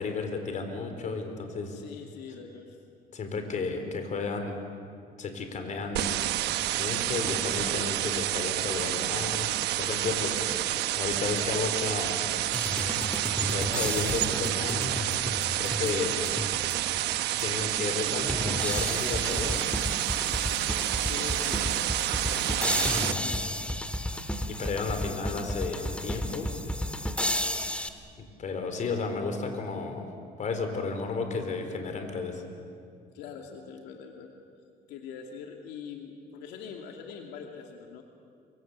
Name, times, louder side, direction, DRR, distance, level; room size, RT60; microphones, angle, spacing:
voice 1, 0.0-1.8 3.1-4.6 5.2-6.1 6.8-9.5 9.8-10.4 11.0-12.2 13.5-15.0 15.6-16.1 17.4-19.6 22.6-23.2 24.5-26.5 28.2-30.1 30.4-32.4, left 4 dB, 45° left, 5 dB, 4.4 m, -33 dB
voice 2, 1.7-2.8 10.1-10.5 15.8-16.5 21.0-21.8 22.9-23.6 33.1-34.3 34.9-38.0, left 7 dB, 90° left, 2 dB, 2.5 m, -43 dB
sound 1, 6.0-23.1, right 14 dB, 80° right, 1.1 m, -29 dB
sound 2, 12.5-17.0 17.4-17.5 18.3-27.9, left 1 dB, 5° left, 1.7 m, -33 dB
27.5 x 25.0 x 8.3 m, 2.3 s
cardioid pair, 110°, 17 cm